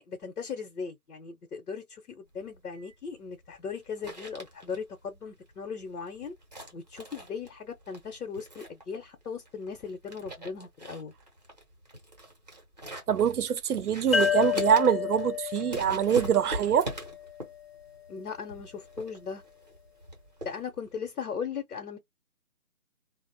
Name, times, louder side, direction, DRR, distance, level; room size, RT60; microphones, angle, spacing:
voice 1, 0.1-6.3 6.7-11.1 18.1-19.4 20.4-22.0, left 6 dB, 80° left, 0.8 m, -38 dB
sound 1, 2.3-21.0, right 1 dB, 30° right, 0.6 m, -43 dB
voice 2, 13.1-16.9, right 8 dB, 80° right, 0.6 m, -24 dB
sound 2, 14.1-17.6, left 7 dB, 45° left, 0.6 m, -31 dB
2.5 x 2.0 x 2.6 m
figure-of-eight pair, 160°, 44 cm